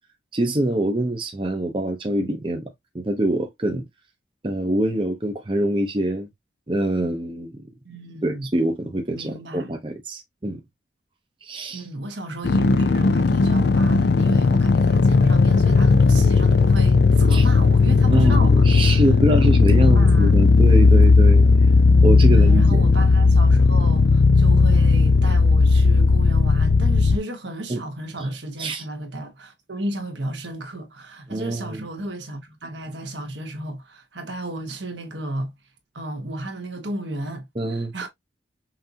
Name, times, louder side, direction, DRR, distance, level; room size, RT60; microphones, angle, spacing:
voice 1, 0.3-2.7 2.9-3.8 4.4-6.3 6.7-7.6 8.2-10.6 11.4-11.9 17.3-17.4 18.1-21.5 22.0-22.8 27.7-27.8 28.6-28.8 31.3-31.9 37.6-38.1, right 1 dB, 30° right, 0.7 m, -24 dB
voice 2, 7.8-8.5 9.1-9.8 11.7-19.0 19.6-20.3 22.3-35.5 35.9-37.5 37.9-38.1, right 1 dB, 80° right, 1.4 m, -33 dB
sound 1, 12.4-27.2, left 4 dB, 65° left, 0.4 m, -16 dB
5.7 x 2.7 x 2.8 m
head